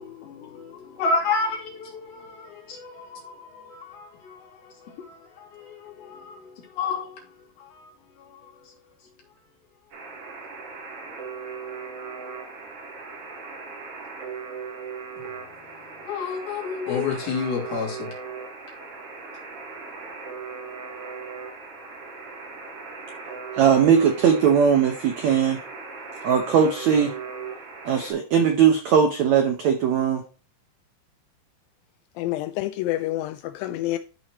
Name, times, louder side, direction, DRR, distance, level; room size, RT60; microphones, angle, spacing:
voice 1, 0.0-7.9 8.2-8.7 15.2-15.4 16.0-18.1, left 4 dB, 70° left, 4.5 m, -31 dB
Alarm, 9.9-28.1, right 5 dB, 65° right, 3.9 m, -38 dB
voice 2, 23.5-25.6 26.2-27.1 27.8-30.2, right 7 dB, 85° right, 1.5 m, -19 dB
voice 3, 32.2-34.0, left 15 dB, 90° left, 2.0 m, -28 dB
13.5 x 4.5 x 3.0 m
omnidirectional pair, 4.6 m